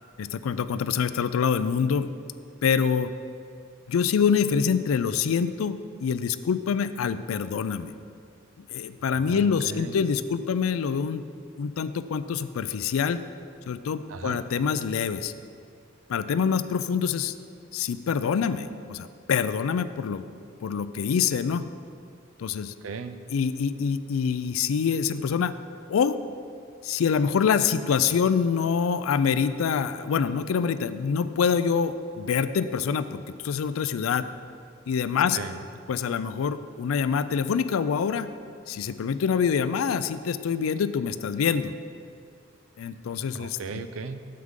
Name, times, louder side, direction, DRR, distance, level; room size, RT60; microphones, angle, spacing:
voice 1, 0.2-2.1 2.6-3.1 3.9-7.9 8.7-11.2 11.6-13.2 13.7-15.3 16.1-17.4 17.7-20.3 20.6-21.6 22.4-22.7 23.3-25.5 25.9-26.2 26.8-34.3 34.9-35.4 35.9-38.3 38.7-41.7 42.8-43.6, left 6 dB, 85° left, 13 dB, 0.4 m, -25 dB
voice 2, 9.3-10.0 14.1-14.4 22.8-23.2 35.3-35.6 43.3-44.3, right 4 dB, 80° right, 10 dB, 0.5 m, -36 dB
9.4 x 7.6 x 3.7 m, 2.3 s
head